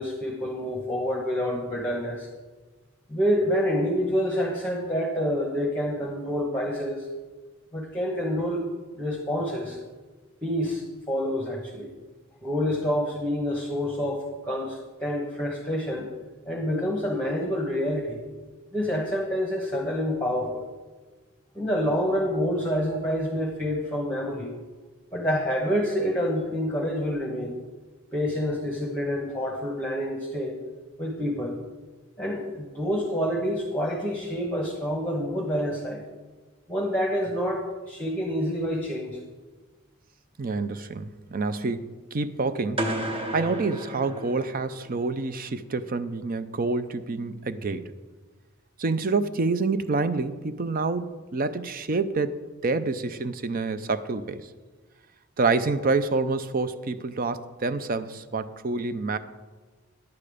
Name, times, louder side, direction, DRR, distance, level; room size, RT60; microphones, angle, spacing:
voice 1, 0.0-2.3 3.1-7.1 7.7-8.6 9.0-9.8 10.4-11.9 12.4-16.1 16.5-18.2 18.7-20.6 21.5-24.5 25.1-27.6 28.1-30.6 31.0-31.6 32.2-36.0 36.7-39.2, equal, 5° left, -2 dB, 1.2 m, -27 dB
voice 2, 40.4-42.9 43.3-47.8 48.8-52.3 52.6-54.5 55.4-59.2, right 3 dB, 45° right, 12 dB, 0.5 m, -27 dB
sound 1, 42.8-44.9, equal, 25° right, 0.9 m, -32 dB
10.5 x 8.8 x 5.0 m, 1.3 s
head